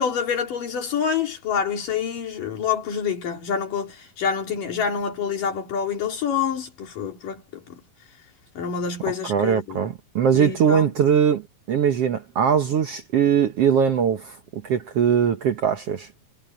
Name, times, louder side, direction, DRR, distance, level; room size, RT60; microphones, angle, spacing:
voice 1, 0.0-7.4 7.7-7.8 8.6-9.8 10.3-10.9, left 7 dB, 80° left, 4.6 m, -27 dB
voice 2, 9.2-11.4 11.7-16.1, right 8 dB, 60° right, 1.8 m, -21 dB
omnidirectional pair, 3.8 m